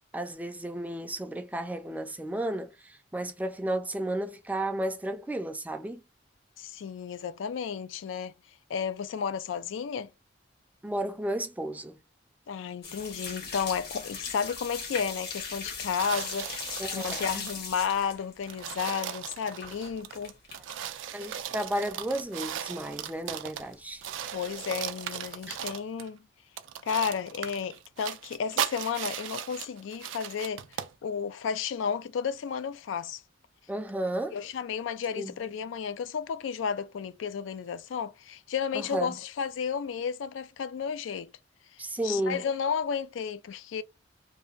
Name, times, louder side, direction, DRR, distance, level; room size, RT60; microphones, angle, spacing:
voice 1, 0.1-6.0 10.8-12.0 16.8-17.4 21.1-24.0 25.5-25.6 33.7-34.4 35.2-35.3 38.7-39.1 41.8-42.4, right 1 dB, 10° right, 0.4 m, -33 dB
voice 2, 6.6-8.3 8.7-10.1 12.5-20.3 24.3-26.3 26.8-33.2 34.3-41.3 41.7-43.8, left 7 dB, 75° left, 0.3 m, -32 dB
sound 1, 12.8-20.8 21.1-21.9 22.2-22.3 22.7-22.8 23.0-23.3 24.0-24.6 25.0-25.6, left 4 dB, 55° left, 1.0 m, -39 dB
sound 2, 16.0-17.6 18.1-18.2 18.4-23.7 24.0-26.1 26.6-30.9, right 9 dB, 75° right, 0.4 m, -37 dB
2.7 x 2.1 x 2.4 m
head